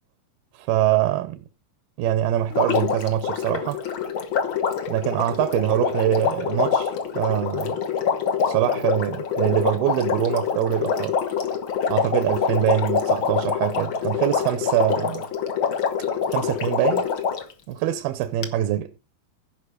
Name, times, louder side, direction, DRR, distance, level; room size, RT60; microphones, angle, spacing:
voice 1, 0.5-1.4 2.0-3.8 4.9-7.8 8.5-11.2 11.9-15.3 16.3-17.1 17.7-18.9, right 13 dB, 80° right, 2.6 m, -24 dB
Water, 2.5-17.5 18.4-18.5, left 7 dB, 65° left, 1.2 m, -25 dB
15.5 x 5.6 x 4.9 m
omnidirectional pair, 4.3 m